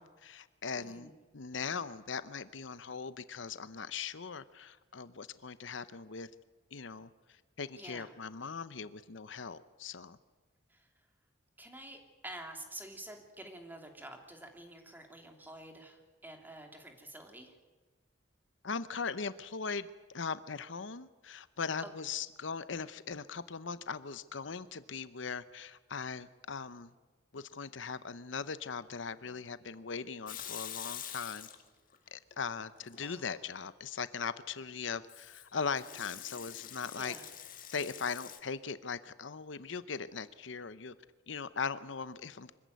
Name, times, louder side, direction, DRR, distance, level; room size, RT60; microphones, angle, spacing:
voice 1, 0.0-6.3 6.7-10.2 18.6-26.9 27.3-31.5 32.1-37.1 37.7-40.9 41.3-42.5, left 5 dB, 75° left, 14 dB, 0.8 m, -40 dB
voice 2, 0.8-1.1 7.7-8.1 10.7-10.9 11.6-17.5 21.8-21.9 33.0-33.3 36.9-37.2, right 1 dB, 10° right, 3 dB, 2.9 m, -48 dB
Water tap faucet / Sink (filling or washing) / Liquid, 30.3-32.0 32.3-33.1 35.1-38.4, left 10 dB, 45° left, 1.9 m, -46 dB
25.0 x 15.0 x 9.3 m, 1.3 s
head